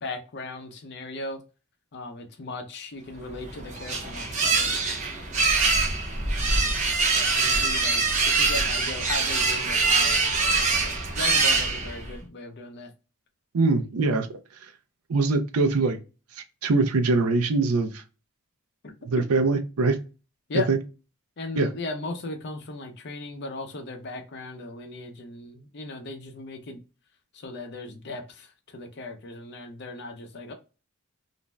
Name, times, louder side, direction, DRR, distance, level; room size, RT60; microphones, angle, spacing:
voice 1, 0.0-1.4 1.9-4.7 6.4-6.7 7.0-12.9 18.8-18.9 20.5-20.7 21.4-26.8 27.3-30.5, left 2 dB, 50° left, 0.6 m, -37 dB
sound 1, 3.3-12.2, right 4 dB, 35° right, 0.7 m, -24 dB
voice 2, 13.5-14.3 15.1-16.0 16.4-18.0 19.1-20.0 20.7-20.8 21.6-21.7, right 3 dB, 80° right, 0.5 m, -23 dB
2.5 x 2.1 x 3.1 m
head